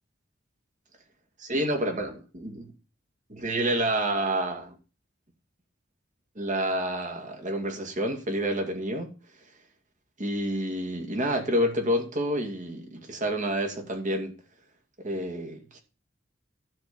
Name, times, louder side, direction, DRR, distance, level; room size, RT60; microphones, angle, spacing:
voice 1, 1.4-2.7 3.3-4.8 6.4-9.1 10.2-14.3 15.0-15.8, right 1 dB, 40° right, 2.4 m, -29 dB
12.5 x 4.4 x 7.0 m
head